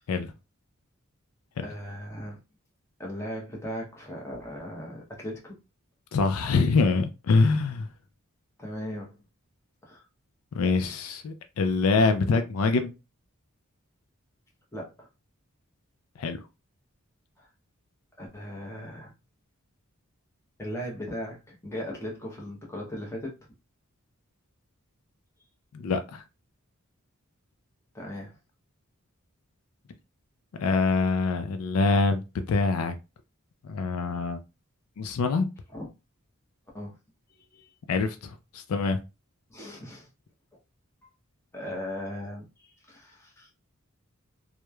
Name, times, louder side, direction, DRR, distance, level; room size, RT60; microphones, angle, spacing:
voice 1, 1.6-2.4 3.0-5.6 8.6-9.2 9.8-10.1 14.7-15.1 17.4-17.5 18.2-19.1 20.6-23.4 27.9-28.4 35.7-35.9 36.7-37.0 37.5-37.7 39.5-40.1 41.5-43.5, equal, 10° left, 0.7 m, -38 dB
voice 2, 6.1-7.9 10.5-12.9 16.2-16.4 25.7-26.2 30.5-32.2 32.5-33.0 33.6-34.4 35.0-35.5 37.9-39.0, left 4 dB, 80° left, 0.4 m, -25 dB
3.0 x 2.0 x 2.3 m
head